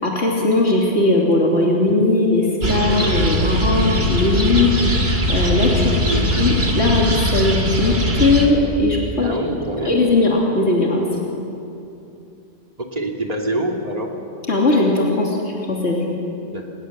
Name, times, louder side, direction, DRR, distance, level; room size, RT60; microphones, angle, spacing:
voice 1, 0.0-4.7 5.3-6.0 6.3-9.3 9.8-11.1 14.5-16.0, left 2 dB, 75° left, -2 dB, 3.3 m, -18 dB
sound 1, 2.6-8.5, equal, 65° right, 3.1 m, -20 dB
voice 2, 9.2-10.0 12.8-14.1 16.5-16.6, right 1 dB, 35° right, 1 dB, 2.6 m, -25 dB
28.0 x 20.5 x 7.7 m, 2.7 s
omnidirectional pair, 1.1 m